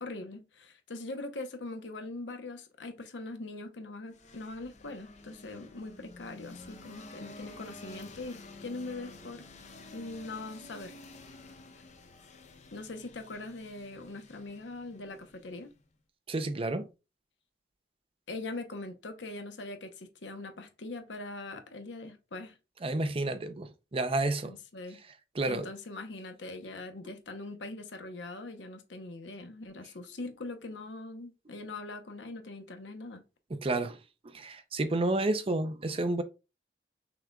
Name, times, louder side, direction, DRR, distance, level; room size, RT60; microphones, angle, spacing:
voice 1, 0.0-9.4 9.9-11.0 12.7-15.7 18.3-22.6 24.4-25.0 25.5-33.2, left 2 dB, 85° left, 0.9 m, -42 dB
sound 1, 4.1-15.9, left 3 dB, 40° left, 0.6 m, -51 dB
voice 2, 16.3-16.9 22.8-24.5 25.3-25.7 33.5-34.0 34.3-36.2, right 2 dB, 30° right, 0.5 m, -30 dB
5.9 x 3.7 x 2.3 m
head